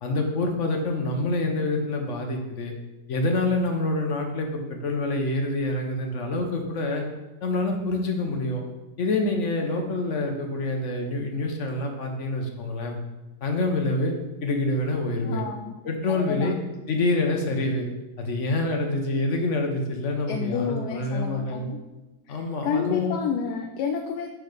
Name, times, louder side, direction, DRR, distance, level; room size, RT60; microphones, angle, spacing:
voice 1, 0.0-2.7 3.1-7.0 7.4-8.6 9.0-13.0 13.4-14.1 14.4-15.4 15.8-16.6 16.9-17.9 18.2-21.7 22.3-23.2, left 2 dB, 55° left, 3 dB, 1.2 m, -26 dB
voice 2, 15.2-15.8 16.1-16.5 20.3-21.8 22.3-24.3, left 6 dB, 85° left, 4 dB, 1.1 m, -30 dB
6.2 x 4.7 x 5.0 m, 1.1 s
omnidirectional pair, 1.7 m